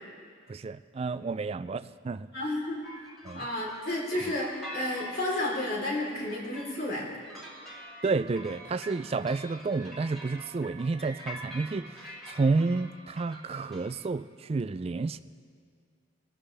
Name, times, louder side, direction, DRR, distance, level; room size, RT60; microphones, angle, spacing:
voice 1, 0.5-2.3 3.2-3.5 4.2-4.3 8.0-15.2, right 3 dB, 30° right, 14 dB, 0.3 m, -30 dB
voice 2, 2.3-2.8 3.3-4.5 4.7-7.1, left 1 dB, 55° left, -3 dB, 3.6 m, -31 dB
sound 1, 2.8-13.9, right 1 dB, ahead, 2.4 m, -46 dB
24.5 x 14.0 x 3.4 m, 2.1 s
head